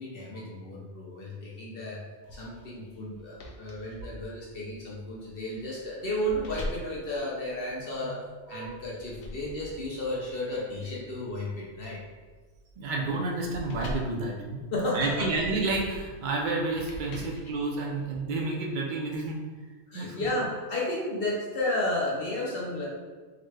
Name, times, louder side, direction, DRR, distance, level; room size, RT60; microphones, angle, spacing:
voice 1, 0.0-2.0 2.3-8.2 8.5-12.0 14.7-15.3 19.9-22.9, left 1 dB, 60° left, -4 dB, 0.7 m, -33 dB
sound 1, 2.2-8.1 8.6-18.2, left 1 dB, 90° left, 1.1 m, -44 dB
voice 2, 7.8-8.1 8.5-8.8 12.8-14.6 14.9-19.4 19.9-20.2, right 3 dB, 80° right, -1 dB, 0.4 m, -30 dB
3.9 x 2.1 x 3.2 m, 1.4 s
omnidirectional pair, 1.4 m